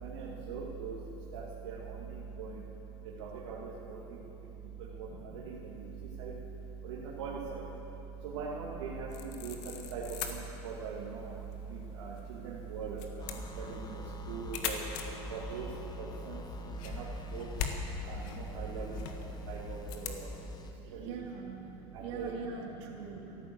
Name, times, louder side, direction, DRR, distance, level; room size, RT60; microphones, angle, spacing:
voice 1, 0.0-1.0 1.3-2.5 3.2-4.0 5.0-5.8 6.2-6.3 6.8-7.6 8.2-9.6 9.9-11.3 11.7-14.0 14.3-14.8 15.3-15.7 16.0-16.4 16.9-17.0 17.3-17.5 18.0-19.0 19.5-20.3 20.9-21.2 21.9-22.3 22.9-23.0, right 5 dB, 85° right, -5 dB, 1.9 m, -40 dB
sound 1, 9.1-20.2, left 7 dB, 65° left, 1.6 m, -43 dB
sound 2, 13.2-20.8, left 4 dB, 30° left, 1.2 m, -45 dB
voice 2, 20.8-21.6 22.0-23.4, right 5 dB, 70° right, -1 dB, 2.8 m, -42 dB
14.0 x 12.0 x 7.8 m, 3.0 s
supercardioid pair, 100°, 15 cm